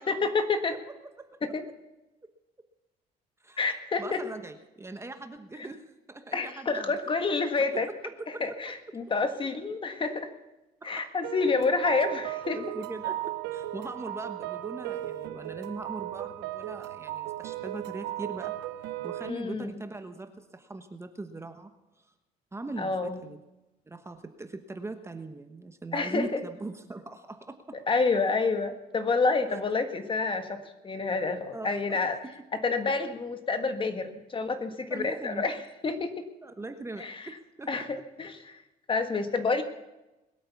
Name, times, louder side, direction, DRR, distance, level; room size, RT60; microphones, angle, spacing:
voice 1, 0.1-0.8 1.4-1.6 3.6-4.2 5.6-5.7 6.3-7.9 8.4-10.3 10.8-12.6 19.2-19.8 22.8-23.2 25.9-26.4 27.9-32.2 32.5-35.6 35.8-36.3 37.0-37.3 37.7-38.6 38.9-39.6, left 4 dB, 30° left, 8 dB, 1.6 m, -28 dB
voice 2, 4.0-7.3 7.7-8.7 10.8-10.9 12.5-18.5 19.0-21.7 22.5-23.4 23.9-27.8 29.5-29.6 31.5-32.0 34.9-35.4 36.4-37.9, right 2 dB, 15° right, 7 dB, 1.1 m, -41 dB
sound 1, 11.2-19.3, right 14 dB, 90° right, 0.9 m, -36 dB
21.0 x 8.7 x 7.2 m, 1.0 s
cardioid pair, 110°, 17 cm